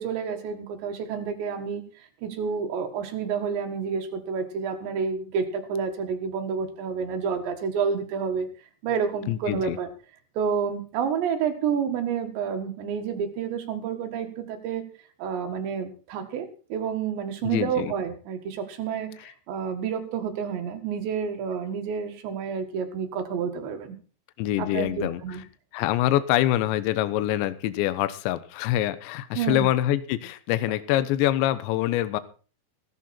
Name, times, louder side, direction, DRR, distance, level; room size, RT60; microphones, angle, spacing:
voice 1, 0.0-1.8 2.2-8.5 8.8-9.9 10.4-14.8 15.2-24.0 24.6-25.4 29.4-29.7, right 6 dB, 65° right, 5 dB, 3.8 m, -29 dB
voice 2, 9.3-9.8 17.4-17.9 24.4-25.2 25.7-32.2, left 14 dB, 75° left, 13 dB, 3.0 m, -25 dB
16.5 x 13.5 x 4.4 m, 0.38 s
omnidirectional pair, 5.8 m